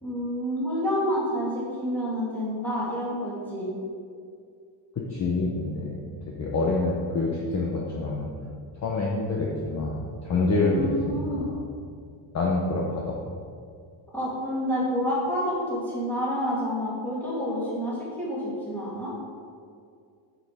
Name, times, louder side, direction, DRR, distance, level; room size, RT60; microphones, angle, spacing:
voice 1, 0.0-3.7 10.6-11.5 14.1-19.1, equal, 5° left, -8 dB, 2.5 m, -29 dB
voice 2, 5.0-6.0 6.3-8.3 8.8-11.6 12.3-13.2, left 3 dB, 35° left, -2 dB, 0.9 m, -27 dB
7.7 x 7.2 x 5.0 m, 2.3 s
cardioid pair, 175°, 49 cm